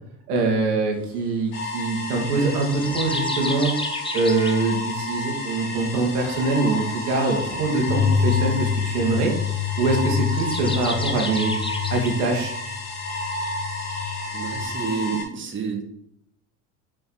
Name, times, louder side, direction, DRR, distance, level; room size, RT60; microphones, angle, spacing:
voice 1, 0.3-3.7 4.1-9.3 9.8-11.5 11.9-12.5, right 3 dB, 75° right, 1 dB, 2.4 m, -23 dB
sound 1, 1.5-15.2, left 1 dB, 55° left, 2.8 m, -31 dB
sound 2, 2.3-4.6 8.3-8.5 10.1-12.2 12.9-13.0, left 3 dB, 10° left, 1.1 m, -33 dB
sound 3, 7.8-14.7, left 7 dB, 90° right, 2.8 m, -27 dB
voice 2, 14.3-15.8, right 6 dB, 25° right, 1 dB, 2.1 m, -29 dB
7.8 x 5.6 x 4.5 m, 0.72 s
hypercardioid pair, 70°, 47 cm